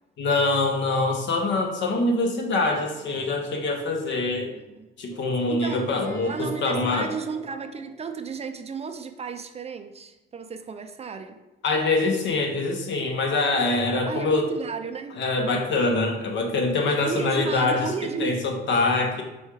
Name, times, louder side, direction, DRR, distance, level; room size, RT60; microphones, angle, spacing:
voice 1, 0.2-4.5 5.0-7.1 11.6-14.5 15.2-17.9 18.2-19.2, left 3 dB, 65° left, 2 dB, 0.8 m, -24 dB
sound 1, 2.9-4.8 5.1-8.3, equal, 15° left, 1.4 m, -46 dB
voice 2, 5.4-11.4 14.1-15.2 17.0-18.5, right 5 dB, 30° right, 8 dB, 0.3 m, -33 dB
4.3 x 2.3 x 4.6 m, 1.1 s
cardioid pair, 90°, 20 cm